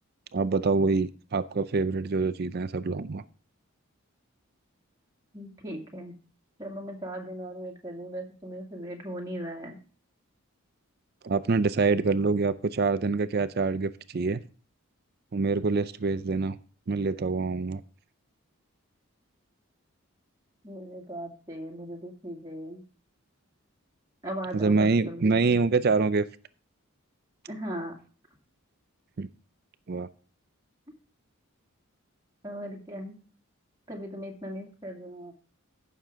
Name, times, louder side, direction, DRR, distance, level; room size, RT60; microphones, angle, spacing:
voice 1, 0.3-3.2 11.2-14.4 15.3-16.5 16.9-17.8 24.5-26.2 29.2-29.3 29.9-30.1, right 4 dB, 45° right, 14 dB, 0.4 m, -25 dB
voice 2, 5.3-6.1 6.6-9.8 20.6-22.8 24.2-25.6 27.5-28.0 32.4-33.2 33.9-35.3, equal, 15° right, -1 dB, 2.2 m, -38 dB
14.5 x 6.6 x 3.6 m, 0.39 s
head